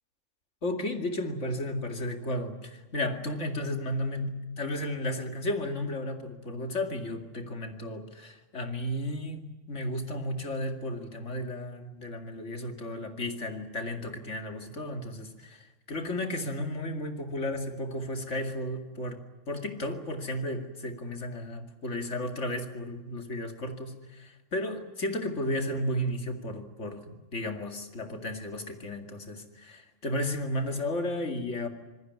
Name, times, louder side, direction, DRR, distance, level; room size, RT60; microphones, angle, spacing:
voice 1, 0.6-19.2 19.5-31.7, left 1 dB, 75° left, 5 dB, 2.7 m, -33 dB
26.5 x 19.5 x 9.5 m, 1.1 s
omnidirectional pair, 1.2 m